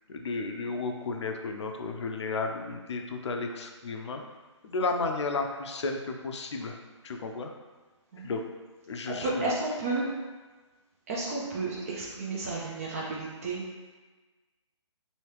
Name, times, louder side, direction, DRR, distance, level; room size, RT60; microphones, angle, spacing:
voice 1, 0.1-4.2 4.6-6.8 7.0-7.5 8.2-8.4 8.9-9.5, left 3 dB, 65° left, 4 dB, 0.5 m, -33 dB
voice 2, 9.1-10.1 11.1-13.6, right 3 dB, 30° right, -4 dB, 0.4 m, -32 dB
3.0 x 2.8 x 3.2 m, 1.3 s
hypercardioid pair, 155°, 16 cm